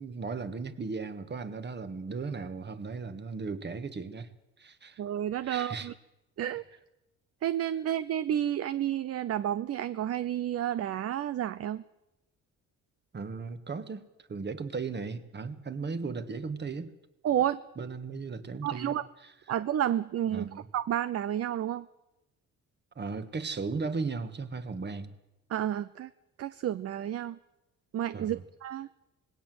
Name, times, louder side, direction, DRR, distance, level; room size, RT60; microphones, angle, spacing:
voice 1, 0.0-4.3 4.6-5.0 5.4-5.9 13.1-16.9 17.8-18.9 20.3-20.7 22.9-25.1 28.1-28.4, right 4 dB, 35° right, 11 dB, 1.7 m, -36 dB
voice 2, 5.0-5.9 6.4-6.6 7.4-11.8 17.2-17.6 18.6-19.0 19.5-21.9 25.5-26.1 26.4-27.4 27.9-28.9, right 11 dB, 50° right, 16 dB, 0.6 m, -30 dB
19.5 x 17.0 x 7.8 m, 0.95 s
cardioid pair, 90°, 30 cm